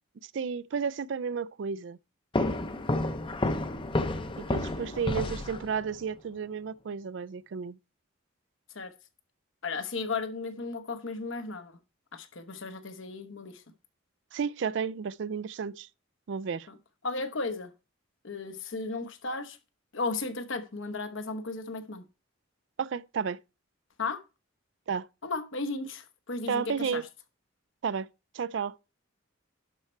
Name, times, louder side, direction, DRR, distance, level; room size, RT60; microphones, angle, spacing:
voice 1, 0.3-2.0 4.5-7.8 14.3-15.9 16.3-16.7 22.8-23.4 24.9-25.1 26.5-27.0 27.8-28.1 28.3-28.8, right 6 dB, 60° right, 0.4 m, -32 dB
sound 1, 2.3-6.0, left 2 dB, 25° left, 0.6 m, -30 dB
voice 2, 9.6-11.8 12.1-13.6 16.7-16.8 17.0-17.7 18.2-19.6 19.9-22.0 24.0-24.2 25.2-27.0, left 3 dB, 70° left, 1.1 m, -35 dB
11.5 x 4.3 x 4.5 m
head